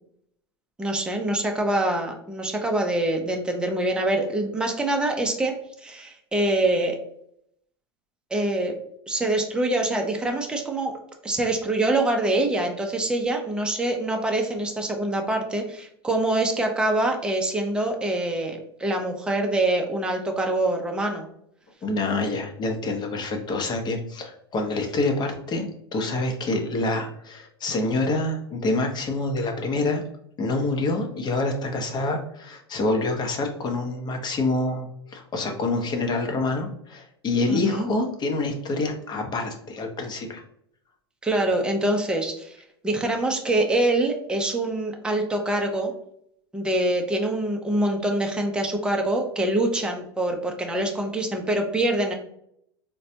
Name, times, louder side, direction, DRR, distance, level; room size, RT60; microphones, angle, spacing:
voice 1, 0.8-5.5 5.8-7.0 8.3-8.7 9.1-10.9 11.2-21.3 37.5-37.9 41.2-42.6 42.8-45.9 46.5-52.1, right 1 dB, 5° right, 2 dB, 0.6 m, -25 dB
voice 2, 21.8-30.0 30.4-40.4, left 2 dB, 30° left, 3 dB, 0.8 m, -26 dB
4.0 x 2.2 x 2.7 m, 0.72 s
hypercardioid pair, 95°, 14 cm